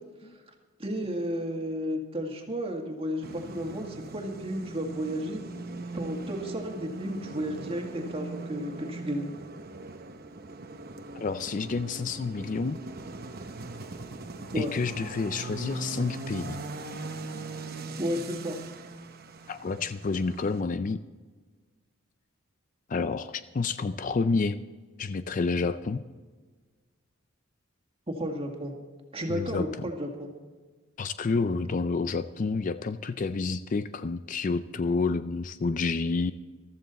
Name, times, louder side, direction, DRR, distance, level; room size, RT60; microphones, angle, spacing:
voice 1, 0.8-5.4 5.9-9.3 14.5-14.7 18.0-18.6 28.1-28.7 29.1-30.3, equal, 30° right, 2 dB, 1.9 m, -33 dB
sound 1, 3.2-20.6, right 3 dB, 45° right, 0.9 m, -40 dB
voice 2, 11.2-12.8 14.6-16.6 19.5-21.0 22.9-24.6 25.0-26.0 29.3-29.7 31.0-36.3, left 4 dB, 40° left, 12 dB, 0.4 m, -29 dB
15.0 x 13.0 x 4.1 m, 1.4 s
head